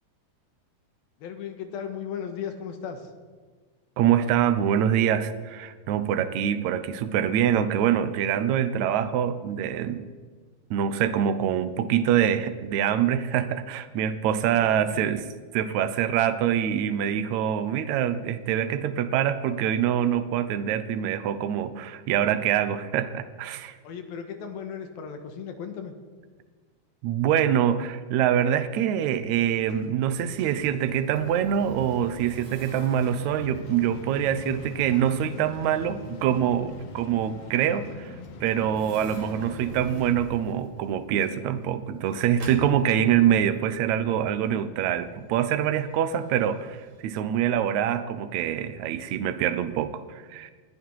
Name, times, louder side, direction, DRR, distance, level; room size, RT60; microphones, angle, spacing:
voice 1, 1.2-3.1 14.5-15.1 23.8-25.9, left 7 dB, 75° left, 7 dB, 3.2 m, -36 dB
voice 2, 4.0-10.0 10.7-15.2 15.5-23.8 27.0-50.5, right 9 dB, 80° right, 11 dB, 1.6 m, -25 dB
sound 1, 29.7-47.0, right 3 dB, 50° right, 3.7 m, -48 dB
sound 2, 31.6-40.1, left 5 dB, 60° left, 1.9 m, -42 dB
21.0 x 14.5 x 4.7 m, 1.5 s
omnidirectional pair, 4.4 m